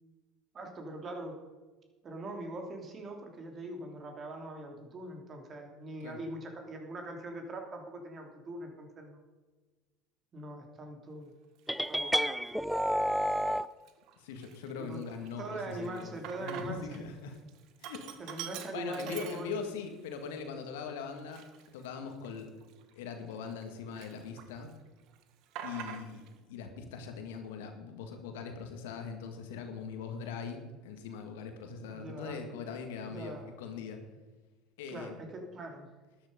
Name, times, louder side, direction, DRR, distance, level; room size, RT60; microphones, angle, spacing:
voice 1, 0.5-1.4 2.0-9.2 10.3-11.3 11.9-12.1 14.8-15.0 15.4-17.0 18.2-19.6 31.9-32.4 33.1-33.5 34.9-35.9, right 1 dB, 35° right, 3 dB, 3.1 m, -42 dB
twanger with banjo hit, 11.7-13.7, equal, ahead, 0.5 m, -30 dB
Sink (filling or washing), 11.7-11.9 12.6-13.1 13.5-13.6 13.9-17.0 17.3-19.9 20.3-20.4 21.1-23.6 23.9-24.7 25.0-26.4, right 10 dB, 60° right, 1.3 m, -46 dB
voice 2, 14.2-16.1 16.4-17.4 17.8-18.1 18.7-21.4 21.7-22.5 22.9-24.7 25.6-34.0 34.8-35.2, left 5 dB, 70° left, 5 dB, 1.8 m, -41 dB
12.5 x 10.0 x 5.2 m, 1.3 s
hypercardioid pair, 70°, 0 cm